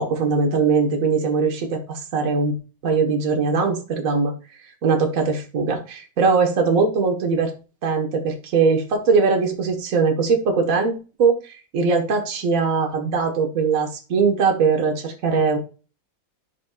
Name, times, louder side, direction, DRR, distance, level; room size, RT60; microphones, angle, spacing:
voice 1, 0.0-2.5 2.8-4.3 4.8-7.5 7.8-15.6, right 4 dB, 45° right, 3 dB, 1.8 m, -21 dB
12.0 x 5.2 x 2.4 m, 0.34 s
omnidirectional pair, 2.1 m